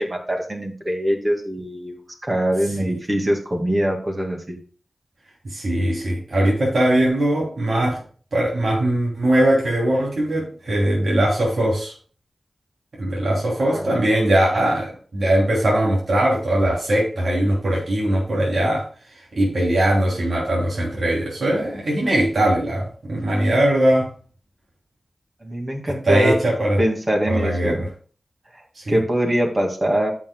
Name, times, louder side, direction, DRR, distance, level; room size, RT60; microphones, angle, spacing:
voice 1, 0.0-2.0 2.2-4.6 13.6-14.0 25.4-26.4 26.8-27.8 28.9-30.1, equal, 35° right, 2 dB, 2.2 m, -23 dB
voice 2, 5.4-8.0 8.3-11.9 12.9-18.8 19.3-24.1 26.0-26.8 27.3-27.9 28.7-29.0, right 1 dB, 75° right, -4 dB, 3.0 m, -20 dB
14.5 x 6.1 x 2.3 m, 0.42 s
wide cardioid pair, 60°, 0 cm